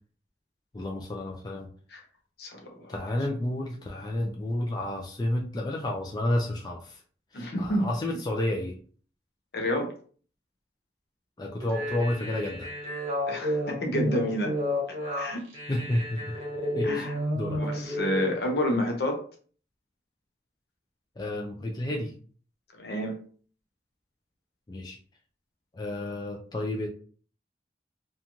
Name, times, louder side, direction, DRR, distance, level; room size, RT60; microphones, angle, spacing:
voice 1, 0.7-1.7 2.9-7.0 7.3-8.8 11.4-12.7 15.7-16.2 16.8-17.1 17.3-17.6 21.2-22.1 24.7-25.0 25.7-26.9, left 1 dB, 25° left, 0.4 m, -30 dB
voice 2, 2.4-2.9 7.3-8.2 9.5-9.9 13.3-14.5 14.9-15.4 16.8-17.2 17.5-19.2 22.8-23.2, equal, 65° left, 0.6 m, -29 dB
sound 1, 11.6-18.3, left 1 dB, 40° right, 0.9 m, -31 dB
2.9 x 2.3 x 2.6 m
head